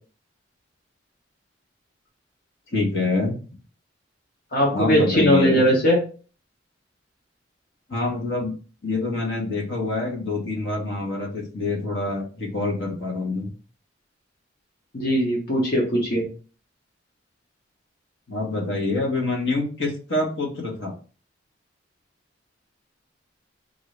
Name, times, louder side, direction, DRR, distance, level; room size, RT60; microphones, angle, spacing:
voice 1, 2.7-3.4 4.7-5.7 7.9-8.5 8.8-13.5 18.3-20.9, left 3 dB, 70° left, -1 dB, 1.5 m, -26 dB
voice 2, 4.5-6.0 14.9-16.2, equal, 55° left, -3 dB, 1.2 m, -20 dB
4.6 x 2.6 x 3.3 m, 0.37 s
head